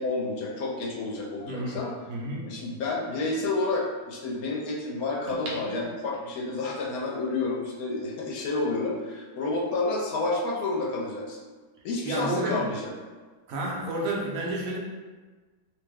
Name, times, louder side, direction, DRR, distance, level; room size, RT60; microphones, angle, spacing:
voice 1, 0.0-1.9 2.4-11.4 11.8-12.9, left 3 dB, 70° left, -3 dB, 1.0 m, -30 dB
voice 2, 1.4-2.5 12.0-12.6 13.5-14.8, right 1 dB, 65° right, -2 dB, 0.9 m, -31 dB
sound 1, 5.3-6.6 7.1-7.2, equal, 85° right, 0.5 m, -41 dB
2.9 x 2.1 x 3.5 m, 1.3 s
omnidirectional pair, 1.8 m